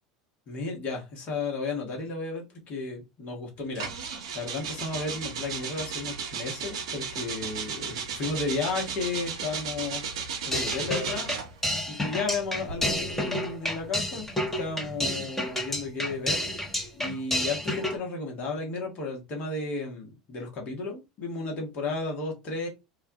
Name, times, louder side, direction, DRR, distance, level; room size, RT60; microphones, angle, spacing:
voice 1, 0.5-10.0 10.4-11.4 11.9-14.3 14.6-16.4 16.9-22.7, left 3 dB, 45° left, 1.0 m, -33 dB
sound 1, 3.7-11.6 12.5-15.0, right 6 dB, 70° right, 0.5 m, -35 dB
sound 2, 10.5-18.0, left 1 dB, 10° left, 0.9 m, -30 dB
2.3 x 2.2 x 2.6 m
figure-of-eight pair, 75°, 3 cm